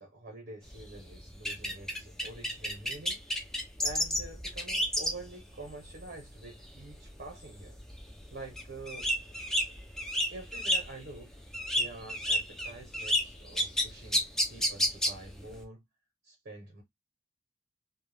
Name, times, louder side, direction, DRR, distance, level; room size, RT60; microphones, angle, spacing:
voice 1, 0.0-3.2 3.8-7.8 8.3-9.1 10.3-11.3 11.7-14.2 14.5-15.8 16.2-16.8, right 2 dB, 50° right, 0.8 m, -47 dB
sound 1, 0.7-5.3 5.7-6.0 6.4-6.9 7.2-7.3 7.6-11.1 11.4-15.5, equal, ahead, 0.5 m, -30 dB
2.3 x 2.0 x 3.2 m
head